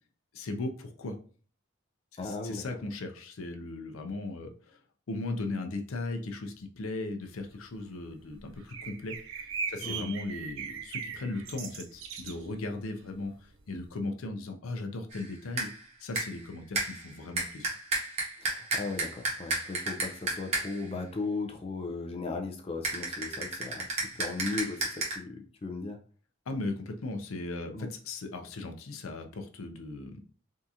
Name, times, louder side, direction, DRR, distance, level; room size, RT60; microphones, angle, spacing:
voice 1, 0.3-1.2 2.1-4.8 5.1-9.2 9.7-15.7 16.0-17.7 26.5-30.2, left 2 dB, 75° left, 5 dB, 0.5 m, -37 dB
voice 2, 2.2-2.6 9.8-10.1 18.4-23.9 24.2-26.0 27.7-27.9, left 3 dB, 25° left, 3 dB, 0.4 m, -36 dB
sound 1, 7.8-7.9 8.3-12.5 12.8-12.9 13.1-13.6, right 6 dB, 65° right, 0.4 m, -39 dB
sound 2, 15.1-15.3 15.6-15.8 16.2-16.5 16.7-20.9 22.8-25.2, right 2 dB, 30° right, 0.9 m, -33 dB
3.6 x 2.4 x 2.7 m, 0.41 s
head